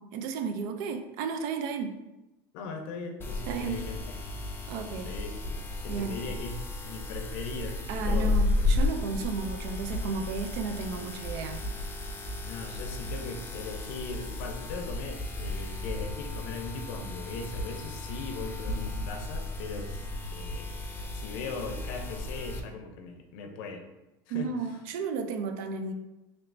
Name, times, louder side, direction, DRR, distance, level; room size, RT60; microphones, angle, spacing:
voice 1, 0.0-2.0 3.5-3.8 4.7-5.1 5.9-6.2 7.9-11.6 24.3-25.9, right 5 dB, 70° right, 7 dB, 0.4 m, -33 dB
voice 2, 2.5-4.4 5.0-8.4 12.4-20.1 20.3-20.7 21.1-23.8 24.3-24.5, left 4 dB, 75° left, 4 dB, 0.6 m, -39 dB
sound 1, 3.2-22.6, left 2 dB, 20° left, 0.4 m, -33 dB
3.2 x 3.1 x 2.5 m, 0.99 s
supercardioid pair, 120°, 11 cm